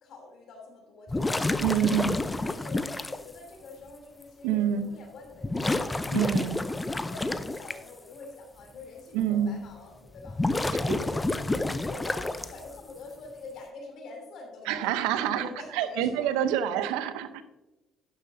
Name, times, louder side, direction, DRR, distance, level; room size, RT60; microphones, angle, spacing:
voice 1, 0.0-5.8 6.1-6.5 7.0-16.3 16.6-16.8, left 3 dB, 60° left, 2 dB, 3.0 m, -46 dB
sound 1, 1.1-3.2 4.2-4.3 5.4-7.7 10.2-12.8, left 2 dB, 20° left, 0.7 m, -29 dB
voice 2, 1.6-2.2 4.4-4.9 6.1-6.6 9.1-9.6 10.9-11.1 14.7-17.4, right 9 dB, 75° right, 12 dB, 0.7 m, -27 dB
11.0 x 10.5 x 2.7 m, 1.0 s
hypercardioid pair, 55°, 0 cm